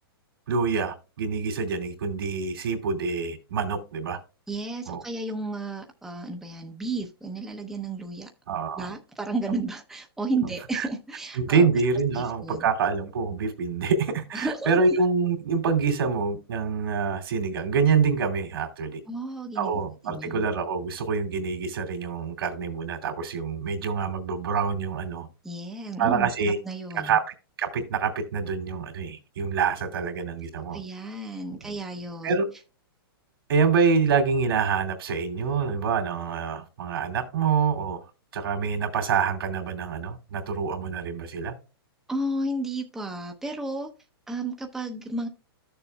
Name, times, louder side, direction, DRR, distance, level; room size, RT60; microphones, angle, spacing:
voice 1, 0.5-4.2 4.9-5.0 8.5-8.9 10.7-10.9 11.4-19.0 19.5-25.3 26.0-26.6 27.0-27.2 27.6-30.8 32.2-32.5 33.5-38.0 38.3-41.5, right 5 dB, 75° right, 4 dB, 2.6 m, -26 dB
voice 2, 4.5-8.3 8.8-11.7 12.1-12.7 14.3-15.0 19.1-19.8 20.1-20.4 25.4-27.2 30.7-32.4 42.1-43.9 44.3-45.3, right 2 dB, 5° right, 2 dB, 0.7 m, -32 dB
13.0 x 7.0 x 2.3 m, 0.32 s
hypercardioid pair, 155°, 13 cm